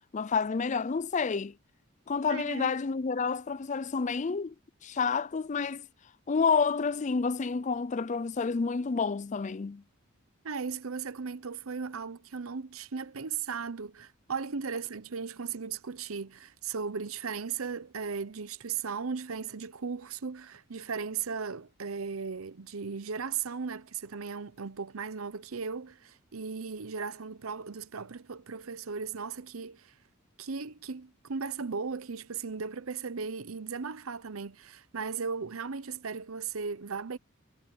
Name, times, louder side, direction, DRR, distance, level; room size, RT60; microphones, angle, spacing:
voice 1, 0.1-1.5 2.1-4.5 4.8-5.9 6.3-9.8, left 5 dB, 35° left, 0.4 m, -29 dB
voice 2, 2.3-2.7 10.4-29.9 30.4-37.2, right 5 dB, 85° right, 0.8 m, -37 dB
head